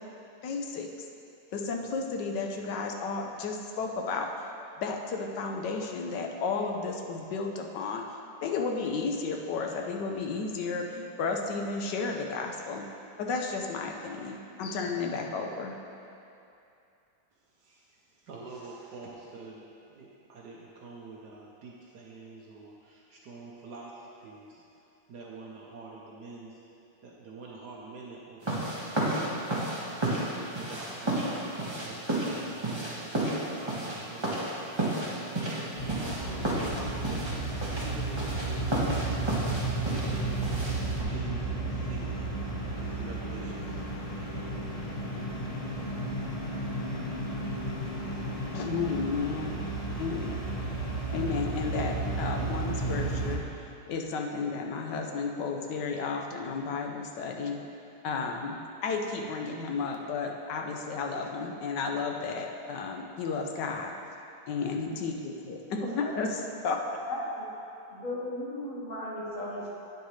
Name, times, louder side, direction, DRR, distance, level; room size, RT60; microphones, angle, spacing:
voice 1, 0.4-0.9 1.5-4.3 4.8-8.0 8.4-12.8 13.2-15.8 48.5-49.7 50.0-50.5 51.1-53.4 53.9-57.6 58.0-63.9 64.5-67.0, left 4 dB, 75° left, 2 dB, 1.4 m, -33 dB
voice 2, 17.6-19.6 19.9-24.6 25.1-26.6 27.0-32.0 32.6-34.6 35.8-37.4 37.8-39.1 39.9-42.3 42.7-43.8, right 3 dB, 70° right, -3 dB, 1.3 m, -46 dB
sound 1, 28.4-41.0, right 1 dB, 15° right, 1.3 m, -32 dB
sound 2, 35.8-53.4, right 2 dB, 30° left, 0.7 m, -33 dB
voice 3, 65.8-66.1 67.1-67.5 67.9-69.8, left 1 dB, 45° left, -6 dB, 2.0 m, -36 dB
10.5 x 8.9 x 3.2 m, 2.7 s
omnidirectional pair, 1.9 m